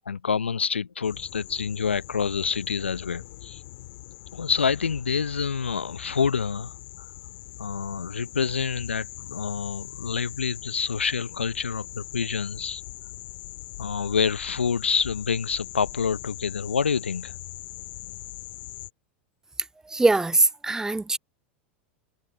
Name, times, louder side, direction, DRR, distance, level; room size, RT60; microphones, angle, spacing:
voice 1, 0.1-3.6 4.3-7.1 7.6-12.8 13.8-17.4, left 6 dB, 85° left, 0.7 m, -27 dB
sound 1, 1.0-18.9, left 18 dB, 65° left, 2.0 m, -42 dB
voice 2, 19.9-21.2, right 2 dB, 10° right, 0.7 m, -22 dB
hypercardioid pair, 90°, 6 cm